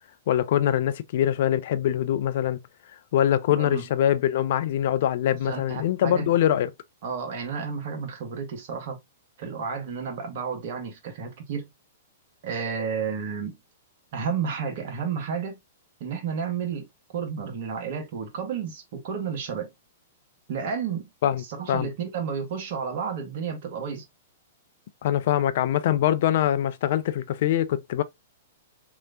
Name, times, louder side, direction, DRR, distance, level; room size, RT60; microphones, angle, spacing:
voice 1, 0.3-2.6 3.1-6.7 21.2-21.9 25.0-28.0, left 11 dB, 55° left, 0.4 m, -23 dB
voice 2, 3.5-3.8 5.4-6.3 7.0-9.0 9.4-11.7 12.4-13.6 14.1-15.6 16.0-16.9 17.1-19.7 20.5-21.1 21.4-24.1, right 6 dB, 55° right, 1.1 m, -31 dB
3.1 x 3.0 x 2.4 m
figure-of-eight pair, 110°, 0 cm